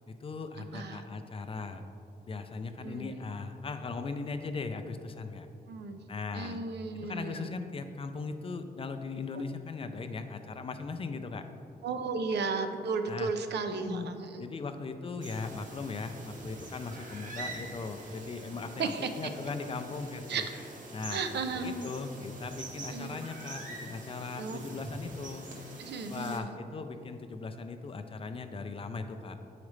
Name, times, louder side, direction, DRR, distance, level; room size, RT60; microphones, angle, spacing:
voice 1, 0.2-1.8 2.2-5.5 6.1-6.6 7.0-11.5 13.1-13.3 13.7-14.1 14.4-18.9 19.2-20.5 20.9-25.5 26.1-29.4, left 4 dB, 35° left, 7 dB, 0.3 m, -38 dB
voice 2, 0.7-1.0 2.8-3.2 5.7-6.0 6.3-7.6 9.3-9.4 11.8-14.4 18.8-19.1 20.3-20.4 21.1-21.9 22.9-23.2 24.4-24.6 25.8-26.6, right 4 dB, 85° right, 7 dB, 0.5 m, -34 dB
sound 1, 15.2-26.4, right 2 dB, 50° right, 0.8 m, -45 dB
8.2 x 4.9 x 3.1 m, 2.7 s
wide cardioid pair, 145°, 17 cm